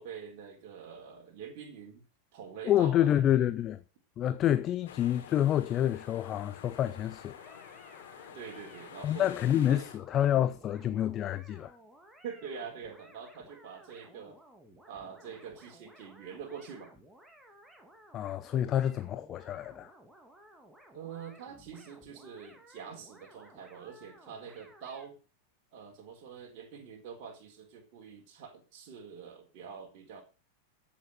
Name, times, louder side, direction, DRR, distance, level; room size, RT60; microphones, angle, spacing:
voice 1, 0.0-2.0 2.3-3.5 8.3-9.3 9.7-9.9 12.2-14.4 14.9-16.9 20.9-25.2 25.7-30.2, right 6 dB, 45° right, 4.4 m, -45 dB
voice 2, 2.6-3.8 4.2-7.6 8.0-8.1 9.0-11.8 18.1-19.9, left 11 dB, 30° left, 0.8 m, -28 dB
sound 1, 4.9-10.0, left 8 dB, 60° left, 3.6 m, -49 dB
sound 2, 7.3-25.1, right 1 dB, 5° right, 3.0 m, -57 dB
14.5 x 7.2 x 7.1 m
figure-of-eight pair, 90°, 0 cm